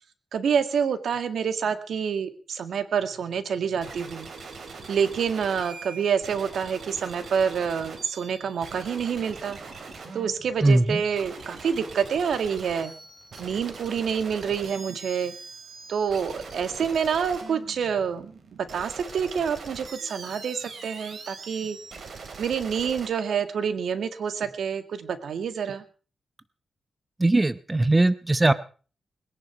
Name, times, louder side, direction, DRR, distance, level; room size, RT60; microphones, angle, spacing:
voice 1, 0.3-4.3 4.9-9.6 10.1-12.9 13.4-15.3 15.9-18.3 18.7-21.8 22.4-25.8, right 7 dB, 85° right, 10 dB, 2.0 m, -27 dB
sound 1, 3.8-23.1, right 4 dB, 65° right, 4.2 m, -42 dB
voice 2, 10.6-11.0 27.2-28.5, right 2 dB, 20° right, 14 dB, 0.9 m, -20 dB
21.0 x 10.5 x 6.0 m, 0.40 s
cardioid pair, 95°, 0 cm